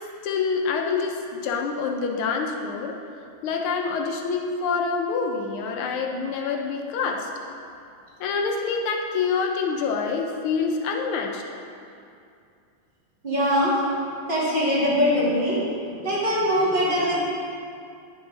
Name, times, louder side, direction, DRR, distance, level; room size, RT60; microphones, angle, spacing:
voice 1, 0.2-1.2 1.4-2.9 3.4-7.3 8.2-11.4, left 5 dB, 85° left, 2 dB, 1.6 m, -26 dB
voice 2, 13.2-13.8 14.3-15.6 16.0-17.2, equal, 25° right, -9 dB, 2.3 m, -22 dB
10.5 x 5.1 x 4.1 m, 2.5 s
omnidirectional pair, 2.3 m